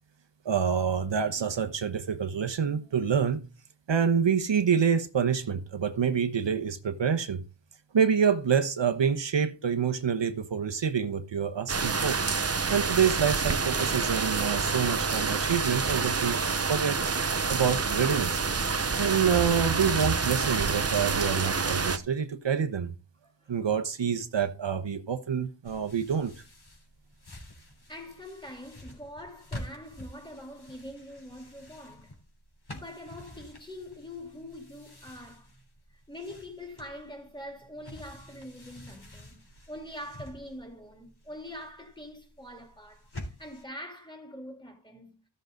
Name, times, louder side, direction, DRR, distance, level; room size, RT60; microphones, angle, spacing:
voice 1, 0.4-3.4 3.9-7.4 7.9-12.2 12.7-16.4 16.7-17.0 17.5-18.4 19.0-22.9 23.5-26.3, right 7 dB, 65° right, 1.0 m, -27 dB
sound 1, 11.7-22.0, right 4 dB, 30° right, 0.8 m, -28 dB
voice 2, 23.2-23.5 27.9-32.1 32.7-35.5 36.1-43.1 43.4-45.2, left 1 dB, 10° left, 3.1 m, -44 dB
sound 2, 25.6-43.6, left 1 dB, 55° left, 3.7 m, -48 dB
14.0 x 6.6 x 3.9 m
wide cardioid pair, 85°, 47 cm